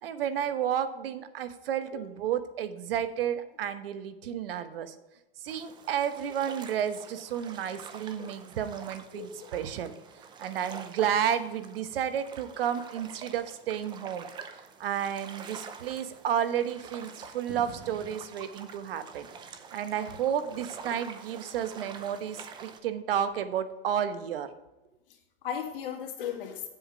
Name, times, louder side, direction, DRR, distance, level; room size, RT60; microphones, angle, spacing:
voice 1, 0.0-4.9 5.4-9.9 10.4-14.3 14.8-19.3 19.7-24.5, right 9 dB, 70° right, 11 dB, 1.1 m, -31 dB
sound 1, 5.5-22.8, right 6 dB, 15° right, 0.6 m, -47 dB
voice 2, 9.1-9.5 25.1-26.7, left 8 dB, 65° left, 2 dB, 2.3 m, -37 dB
sound 2, 17.5-19.7 20.1-21.0 21.9-22.3 23.3-23.4, right 5 dB, 90° right, 1.5 m, -51 dB
8.0 x 7.8 x 5.1 m, 1.0 s
supercardioid pair, 150°, 30 cm